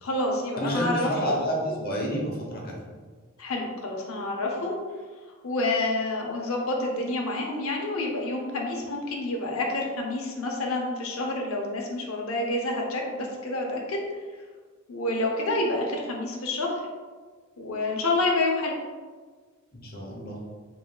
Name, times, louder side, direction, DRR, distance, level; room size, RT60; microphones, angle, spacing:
voice 1, 0.0-1.4 3.4-4.8 5.4-14.1 14.9-16.8 17.6-18.7, left 2 dB, 80° left, 0 dB, 0.7 m, -28 dB
voice 2, 0.6-2.7 19.7-20.4, equal, 45° left, -2 dB, 0.9 m, -29 dB
4.0 x 3.7 x 2.3 m, 1.5 s
head